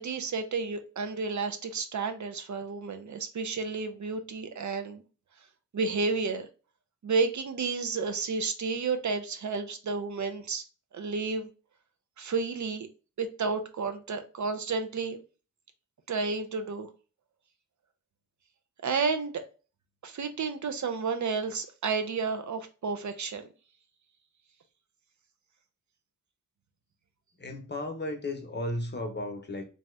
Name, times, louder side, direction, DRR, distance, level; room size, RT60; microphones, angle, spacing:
voice 1, 0.0-5.0 5.7-6.5 7.0-10.6 10.9-11.5 12.2-12.9 13.2-15.2 16.1-16.9 18.8-19.4 20.0-23.5, right 4 dB, 65° right, 0.5 m, -31 dB
voice 2, 27.4-29.6, left 1 dB, 35° left, 0.7 m, -34 dB
2.7 x 2.3 x 3.1 m
wide cardioid pair, 70°, 32 cm